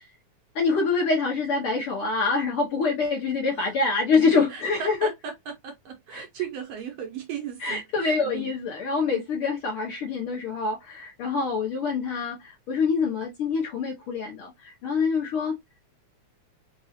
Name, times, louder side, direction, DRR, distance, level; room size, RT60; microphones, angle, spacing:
voice 1, 0.5-5.1 6.1-6.2 7.6-15.6, left 4 dB, 65° left, 1.5 m, -25 dB
voice 2, 4.5-5.3 5.6-8.5, right 8 dB, 70° right, 1.6 m, -36 dB
4.7 x 2.3 x 2.6 m
omnidirectional pair, 3.4 m